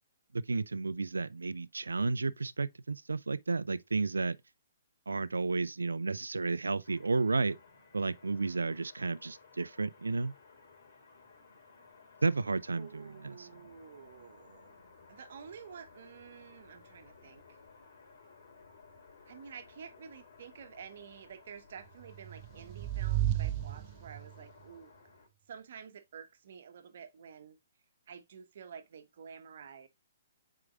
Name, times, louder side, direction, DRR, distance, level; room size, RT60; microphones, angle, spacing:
voice 1, 0.3-4.4 5.1-7.6 7.9-10.3 12.2-13.5, right 3 dB, 75° right, 0.5 m, -32 dB
sound 1, 6.8-25.3, left 4 dB, 50° left, 3.2 m, -58 dB
voice 2, 12.7-14.8 15.1-17.6 19.3-24.9 25.5-27.6 28.1-29.9, right 7 dB, 55° right, 1.2 m, -50 dB
sound 2, 22.1-24.5, right 13 dB, 35° right, 0.6 m, -33 dB
7.8 x 4.9 x 2.4 m
figure-of-eight pair, 125°, 0 cm